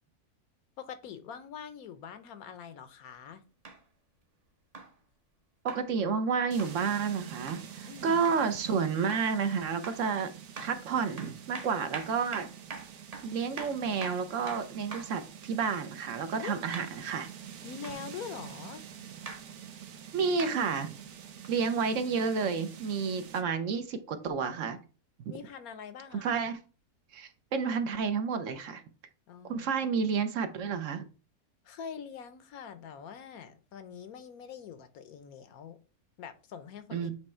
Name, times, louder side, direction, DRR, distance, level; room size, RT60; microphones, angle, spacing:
voice 1, 0.8-3.4 7.8-8.2 16.4-16.6 17.6-18.8 25.3-26.5 29.3-29.7 31.6-35.8 36.2-37.1, left 7 dB, 75° left, 11 dB, 1.2 m, -44 dB
sound 1, 3.6-3.8 4.7-4.9 5.7-5.9 6.6-6.8 7.5-7.7 8.2-8.4 9.1-9.3 9.8-10.1 10.6-10.8 11.2-15.2 16.7-17.0 17.8-18.0 19.3-19.4 20.4-20.6 21.4-21.5, right 4 dB, 35° right, 0.7 m, -43 dB
voice 2, 5.6-10.3 10.6-12.5 13.2-17.3 20.1-20.9 21.5-24.8 25.2-25.3 26.2-26.6 27.1-28.8 29.5-31.0 36.9-37.1, right 5 dB, 65° right, 9 dB, 1.0 m, -30 dB
sound 2, 6.5-23.4, right 8 dB, 80° right, 1.3 m, -47 dB
7.9 x 3.1 x 4.3 m, 0.35 s
omnidirectional pair, 1.5 m